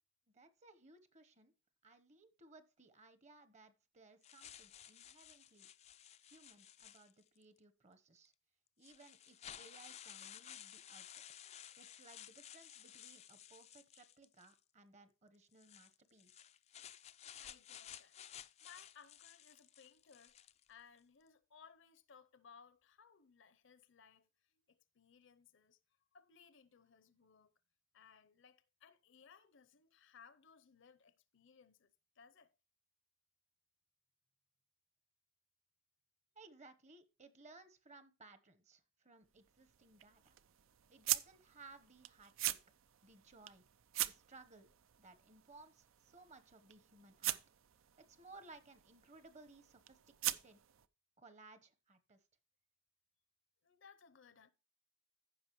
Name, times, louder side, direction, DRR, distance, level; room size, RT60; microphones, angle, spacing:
voice 1, 0.3-1.5 1.8-5.7 6.2-8.3 8.8-11.2 11.8-16.5 36.3-40.4 40.9-42.6 43.0-43.6 44.0-44.7 45.0-47.4 48.0-50.6 51.2-52.2, right 3 dB, 35° right, 1.0 m, -61 dB
sound 1, 4.2-7.4 8.3-8.4 8.8-14.6 15.5-20.7, left 10 dB, 30° left, 0.4 m, -55 dB
voice 2, 17.4-18.2 18.6-20.4 20.7-25.8 26.1-27.5 27.9-32.5 53.6-54.5, left 6 dB, 65° left, 0.7 m, -63 dB
sound 2, 39.2-50.9, right 13 dB, 80° right, 0.5 m, -44 dB
15.0 x 5.7 x 3.0 m
head